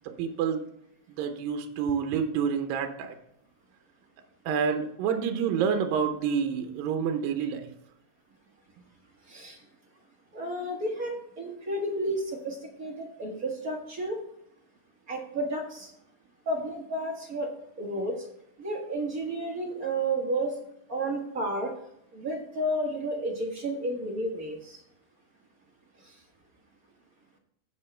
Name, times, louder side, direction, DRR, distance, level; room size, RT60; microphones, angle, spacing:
voice 1, 0.2-0.6 1.1-3.2 4.5-7.7, right 7 dB, 85° right, 6 dB, 2.6 m, -28 dB
voice 2, 9.3-9.6 10.3-14.2 15.1-15.9 16.4-18.3 18.6-20.5 20.9-21.7 22.1-24.8 26.0-26.1, right 1 dB, 55° right, -1 dB, 1.0 m, -32 dB
15.0 x 5.5 x 3.3 m, 0.74 s
omnidirectional pair, 4.0 m